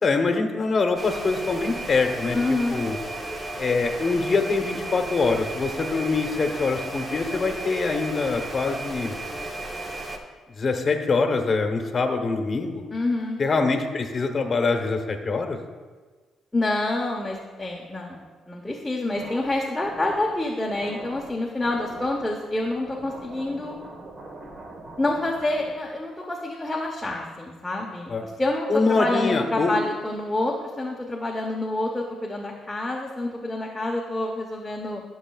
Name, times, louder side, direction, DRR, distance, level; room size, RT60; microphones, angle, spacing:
voice 1, 0.0-2.4 2.7-3.0 3.6-9.2 10.5-12.8 13.4-15.6 28.1-28.2 28.7-29.7, left 4 dB, 40° left, 4 dB, 1.0 m, -24 dB
sound 1, 1.0-10.2, right 1 dB, 25° right, 0.9 m, -34 dB
voice 2, 2.3-2.8 12.9-13.4 16.5-23.8 25.0-35.0, left 2 dB, 10° left, -2 dB, 0.9 m, -27 dB
sound 2, 19.1-26.0, right 2 dB, 45° right, 1.3 m, -43 dB
13.5 x 6.4 x 2.3 m, 1.4 s
cardioid pair, 90°, 0 cm